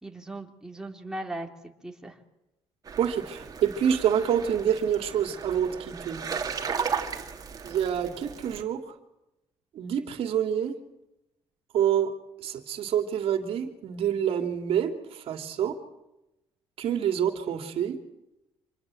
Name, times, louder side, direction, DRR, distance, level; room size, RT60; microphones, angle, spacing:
voice 1, 0.0-2.2, right 1 dB, 5° right, 2 dB, 3.2 m, -38 dB
sound 1, 2.9-8.6, right 6 dB, 35° right, 2.9 m, -35 dB
voice 2, 3.0-6.2 7.6-8.8 9.7-10.8 11.7-12.1 12.4-15.8 16.8-18.0, right 9 dB, 70° right, 6 dB, 2.9 m, -27 dB
26.5 x 21.0 x 7.9 m, 0.93 s
cardioid pair, 100°, 10 cm